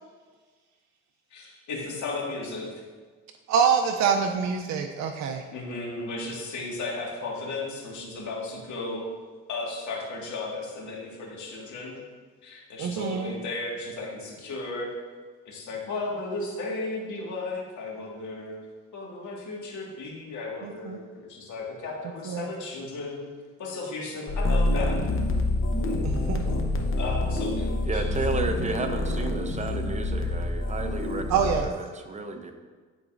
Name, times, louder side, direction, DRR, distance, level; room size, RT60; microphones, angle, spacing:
voice 1, 1.3-2.7 5.5-9.1 9.5-12.0 12.4-14.9 15.5-18.5 18.9-23.3 23.6-25.0 25.7-26.2 26.9-28.2, left 3 dB, 75° left, -3 dB, 1.8 m, -35 dB
voice 2, 3.5-5.4 12.8-13.3 20.6-21.0 22.3-22.5 26.0-26.7 29.2-29.5 31.3-31.7, right 6 dB, 65° right, 4 dB, 0.5 m, -26 dB
sound 1, 24.3-31.6, left 2 dB, 45° left, 0.9 m, -27 dB
voice 3, 27.9-32.5, right 3 dB, 25° right, 6 dB, 0.7 m, -32 dB
11.0 x 3.9 x 2.5 m, 1.4 s
cardioid pair, 90°, 30 cm